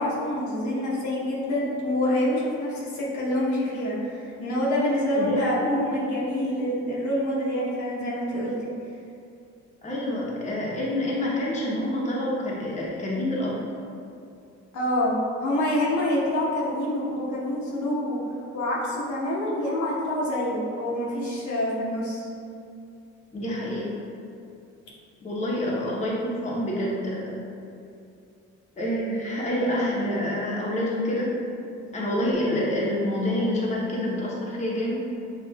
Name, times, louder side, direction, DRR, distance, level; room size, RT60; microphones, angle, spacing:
voice 1, 0.0-8.7 14.7-18.2 18.5-22.3, left 1 dB, 75° left, -6 dB, 1.1 m, -26 dB
voice 2, 5.2-5.7 9.8-13.6 23.3-23.9 25.2-27.4 28.8-31.3 31.9-35.0, left 1 dB, 25° left, -5 dB, 0.9 m, -27 dB
6.4 x 2.5 x 2.3 m, 2.5 s
cardioid pair, 90°, 30 cm